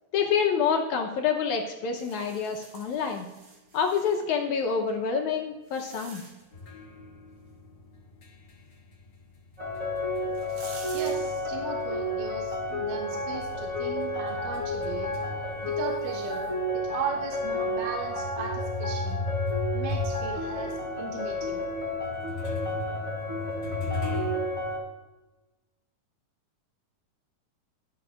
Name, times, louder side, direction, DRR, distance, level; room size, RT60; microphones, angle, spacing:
voice 1, 0.1-3.3 3.7-6.2, left 6 dB, 75° left, 2 dB, 2.1 m, -27 dB
sound 1, 2.0-4.2 5.0-6.6 9.6-9.7 10.2-11.1, right 3 dB, 55° right, 3.3 m, -48 dB
sound 2, 6.5-11.5 11.8-16.5 17.1-17.2 17.9-24.3, left 3 dB, 40° left, 1.8 m, -37 dB
sound 3, 9.6-24.8, left 1 dB, 10° right, 3.9 m, -31 dB
voice 2, 10.9-19.3 19.7-21.7, right 5 dB, 75° right, 1 dB, 2.7 m, -37 dB
15.5 x 11.0 x 2.4 m, 1.1 s
omnidirectional pair, 3.7 m